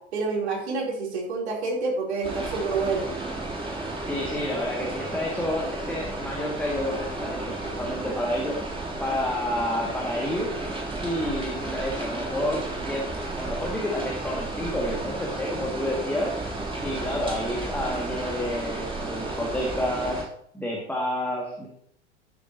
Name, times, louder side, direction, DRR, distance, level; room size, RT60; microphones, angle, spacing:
voice 1, 0.1-3.2, right 4 dB, 65° right, -1 dB, 3.4 m, -28 dB
sound 1, 2.2-20.2, right 2 dB, 15° right, 3.1 m, -33 dB
voice 2, 4.0-8.6 9.0-10.6 11.0-16.4 16.8-20.2 20.5-21.7, left 1 dB, 5° left, -3 dB, 2.0 m, -29 dB
13.0 x 8.4 x 2.8 m, 0.68 s
figure-of-eight pair, 90°, 36 cm